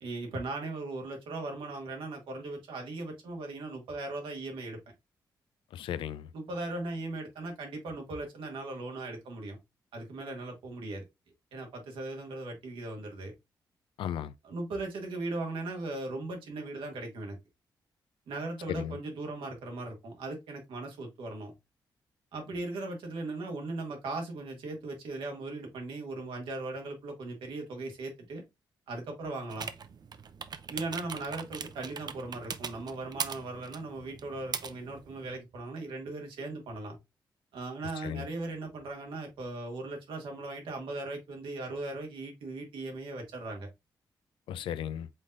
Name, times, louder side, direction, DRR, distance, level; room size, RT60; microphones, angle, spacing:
voice 1, 0.0-4.8 6.3-9.6 9.9-11.0 11.5-13.3 14.4-17.4 18.3-21.5 22.3-28.4 28.9-29.7 30.7-37.0 37.5-43.7, right 2 dB, 85° right, 1.7 m, -38 dB
voice 2, 5.7-6.3 14.0-14.3 18.7-19.0 38.0-38.2 44.5-45.1, left 10 dB, 85° left, 0.4 m, -35 dB
sound 1, 29.5-35.4, right 6 dB, 55° right, 0.6 m, -41 dB
5.0 x 3.9 x 2.4 m
cardioid pair, 60°, 8 cm